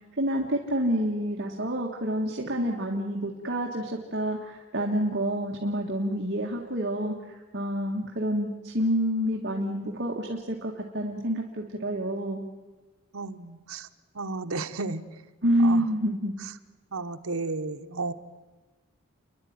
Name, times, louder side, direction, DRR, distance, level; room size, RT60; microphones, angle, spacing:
voice 1, 0.2-12.4 15.4-16.3, equal, 50° right, 0 dB, 1.9 m, -28 dB
voice 2, 13.1-13.9 14.1-15.0 15.6-15.8 16.9-18.1, right 3 dB, 75° right, 6 dB, 1.1 m, -33 dB
30.0 x 11.5 x 9.6 m, 1.3 s
head